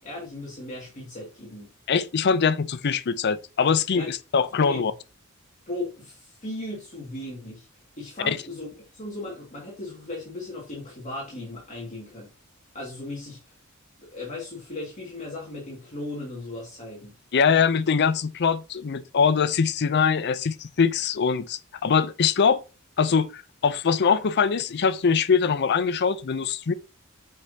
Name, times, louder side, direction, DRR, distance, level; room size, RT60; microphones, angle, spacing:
voice 1, 0.0-1.7 3.9-4.1 4.6-4.8 5.7-7.6 8.0-12.3 12.7-13.4 14.0-17.1, left 2 dB, 35° left, 2.0 m, -37 dB
voice 2, 1.9-4.9 8.2-8.4 17.3-22.6 23.0-26.7, left 6 dB, 50° left, 0.5 m, -23 dB
7.6 x 5.2 x 2.8 m
head